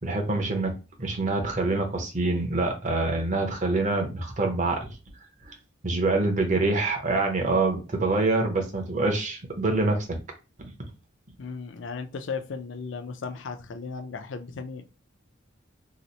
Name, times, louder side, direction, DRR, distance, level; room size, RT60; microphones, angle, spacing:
voice 1, 0.0-0.7 1.0-4.9 5.4-5.6 5.8-10.2 10.6-10.7, right 2 dB, 40° right, 0.7 m, -25 dB
voice 2, 11.4-14.9, left 4 dB, 65° left, 0.4 m, -36 dB
2.9 x 2.0 x 3.9 m
head